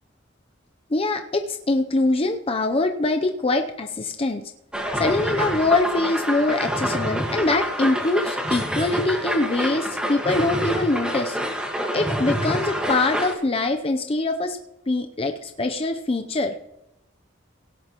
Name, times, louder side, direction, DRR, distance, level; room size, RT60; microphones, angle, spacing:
voice 1, 0.9-4.5 4.9-11.4 11.9-14.6 14.9-16.6, left 2 dB, 30° left, 5 dB, 0.6 m, -23 dB
sound 1, 4.7-13.3, equal, 5° right, 1.6 m, -27 dB
17.0 x 10.0 x 3.0 m, 0.90 s
head